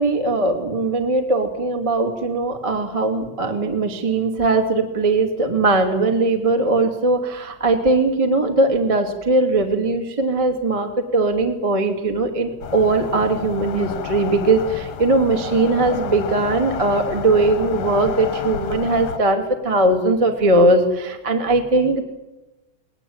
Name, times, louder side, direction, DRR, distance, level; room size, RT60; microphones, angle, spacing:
voice 1, 0.0-22.0, right 2 dB, 15° right, 4 dB, 1.4 m, -19 dB
sound 1, 12.6-19.2, left 8 dB, 60° left, 2.5 m, -30 dB
20.5 x 20.0 x 9.0 m, 1.0 s
omnidirectional pair, 5.6 m